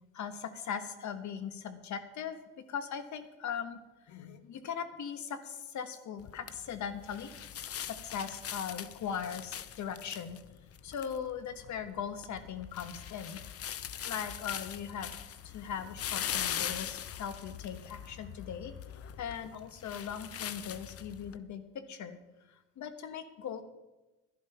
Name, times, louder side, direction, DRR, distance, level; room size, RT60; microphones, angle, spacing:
voice 1, 0.1-3.8 4.1-7.3 7.8-10.4 10.8-13.4 14.0-18.7 19.2-22.2 22.8-23.6, left 7 dB, 70° left, 10 dB, 1.4 m, -39 dB
sound 1, 6.2-21.4, left 9 dB, 50° left, 0.7 m, -41 dB
11.5 x 11.0 x 5.7 m, 1.1 s
cardioid pair, 90°, 30 cm